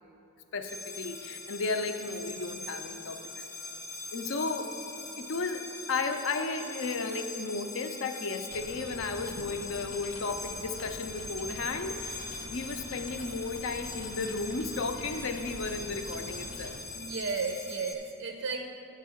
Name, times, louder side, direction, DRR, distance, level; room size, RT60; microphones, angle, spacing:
voice 1, 0.5-3.4 4.1-4.8 5.2-16.8, left 3 dB, 60° left, 7 dB, 0.5 m, -34 dB
sound 1, 0.7-17.9, left 3 dB, 15° left, 0.6 m, -42 dB
sound 2, 8.5-16.8, left 1 dB, 90° left, 0.8 m, -45 dB
voice 2, 16.9-18.7, right 4 dB, 60° right, 4 dB, 0.4 m, -34 dB
10.5 x 3.6 x 7.0 m, 2.9 s
head